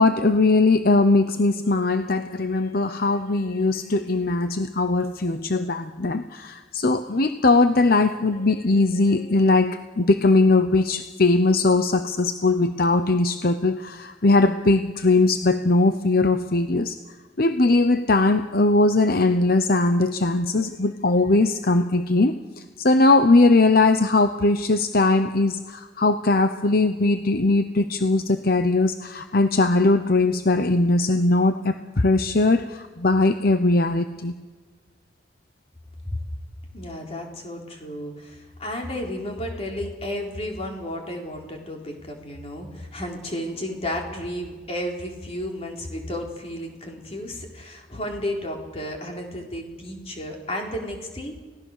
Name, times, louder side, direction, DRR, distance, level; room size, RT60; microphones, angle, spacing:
voice 1, 0.0-16.9 17.4-22.3 22.8-34.4, left 2 dB, 55° left, 9 dB, 0.9 m, -20 dB
voice 2, 36.7-51.4, left 1 dB, 35° left, 1 dB, 4.1 m, -32 dB
29.5 x 17.5 x 6.6 m, 1.4 s
head